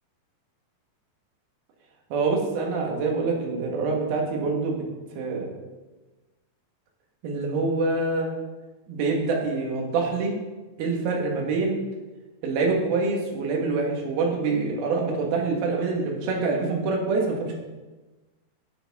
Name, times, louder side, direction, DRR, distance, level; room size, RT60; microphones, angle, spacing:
voice 1, 2.1-4.8 5.2-5.5 7.2-8.3 8.9-10.3 10.8-11.8 12.4-17.6, right 3 dB, 70° right, 0 dB, 3.1 m, -25 dB
11.5 x 6.8 x 3.5 m, 1.2 s
omnidirectional pair, 4.7 m